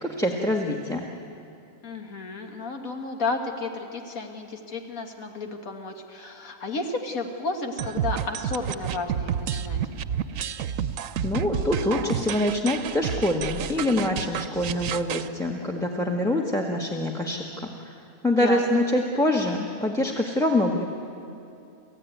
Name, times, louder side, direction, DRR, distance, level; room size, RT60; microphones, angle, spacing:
voice 1, 0.0-1.0 11.2-17.7 18.2-20.9, left 1 dB, 5° left, 1 dB, 1.3 m, -25 dB
voice 2, 1.8-9.8 18.4-18.6, left 3 dB, 80° left, 3 dB, 2.0 m, -32 dB
sound 1, 7.8-15.3, right 8 dB, 75° right, 1.1 m, -30 dB
29.5 x 14.5 x 9.4 m, 2.7 s
omnidirectional pair, 1.4 m